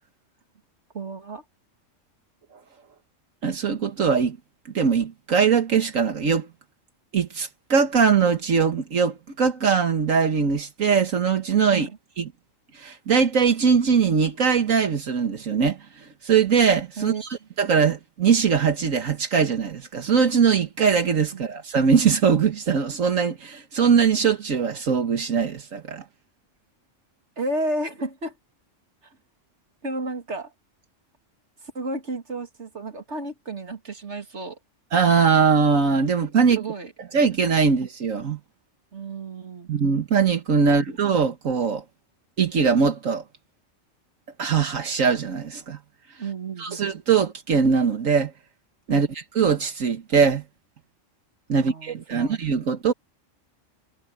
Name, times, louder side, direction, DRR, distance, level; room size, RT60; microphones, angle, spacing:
voice 1, 0.9-1.4 11.7-12.0 17.0-17.2 21.3-21.4 27.4-28.3 29.8-30.5 31.7-34.6 36.6-36.9 38.9-39.7 40.7-40.8 46.2-46.9 48.9-49.1 51.5-52.4, right 2 dB, 60° right, 2.7 m, -32 dB
voice 2, 3.4-4.4 4.7-6.5 7.1-11.9 12.2-12.3 12.7-26.0 34.9-36.6 37.1-38.4 39.7-41.8 42.4-43.2 44.4-45.8 46.6-48.3 48.9-50.4 51.5-52.9, right 6 dB, 80° right, 1.8 m, -21 dB
omnidirectional pair, 1.3 m